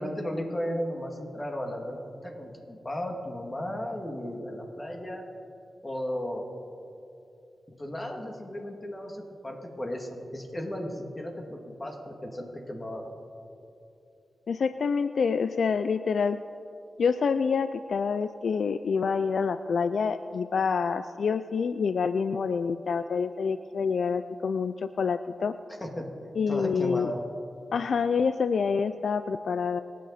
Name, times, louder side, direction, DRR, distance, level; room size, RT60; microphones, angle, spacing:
voice 1, 0.0-5.2 5.8-6.5 7.8-13.1 25.8-26.1 26.5-27.2, equal, 30° left, 2 dB, 2.5 m, -35 dB
voice 2, 14.5-16.4 17.0-25.6 26.4-27.1 27.7-29.8, left 5 dB, 80° left, 12 dB, 0.4 m, -27 dB
25.5 x 9.3 x 4.2 m, 2.6 s
cardioid pair, 55°, 0 cm